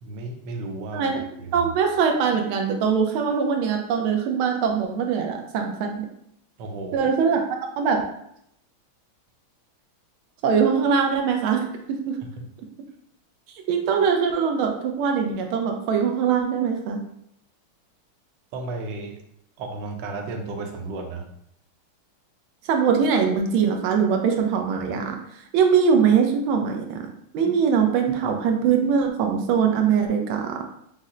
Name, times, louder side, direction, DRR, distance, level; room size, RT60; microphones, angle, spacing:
voice 1, 0.0-1.1 1.4-1.7 6.6-7.1 18.5-19.2 19.6-21.3 27.4-27.5, right 3 dB, 70° right, 3 dB, 1.3 m, -33 dB
voice 2, 0.9-1.2 1.5-6.0 6.9-7.4 7.8-8.0 10.4-12.2 13.7-17.0 22.7-27.1 27.3-30.6, right 6 dB, 90° right, 3 dB, 1.5 m, -22 dB
5.4 x 2.0 x 3.7 m, 0.74 s
omnidirectional pair, 2.2 m